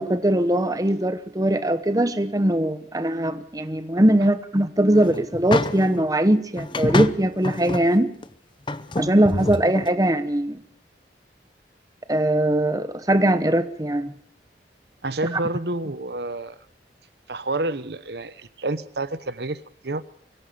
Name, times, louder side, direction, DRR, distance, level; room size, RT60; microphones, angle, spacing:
voice 1, 0.0-8.1 9.0-10.6 12.1-14.1, right 1 dB, 20° right, 0.9 m, -21 dB
sound 1, 4.9-6.0 6.6-7.9 8.2-8.3 8.7-9.9, left 2 dB, 25° left, 0.8 m, -27 dB
voice 2, 15.0-16.6 17.3-20.0, right 2 dB, 65° right, 1.0 m, -29 dB
24.0 x 17.0 x 7.0 m
head